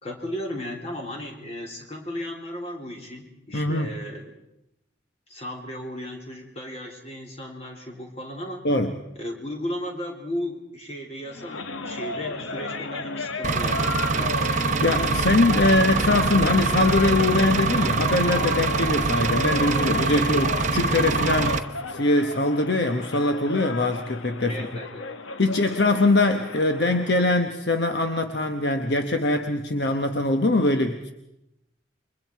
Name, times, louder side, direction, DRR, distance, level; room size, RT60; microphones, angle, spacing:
voice 1, 0.0-4.4 5.3-8.7 9.2-14.3 20.1-20.3 24.5-25.1, equal, 35° left, 0 dB, 3.5 m, -35 dB
voice 2, 3.5-3.9 8.6-8.9 14.5-21.6 21.9-24.6 25.4-31.1, left 2 dB, 60° left, 6 dB, 1.1 m, -22 dB
sound 1, 11.2-27.5, left 3 dB, 90° left, 1.1 m, -34 dB
Engine, 13.4-21.6, right 4 dB, 40° right, 0.8 m, -24 dB
28.5 x 23.0 x 4.6 m, 0.85 s
head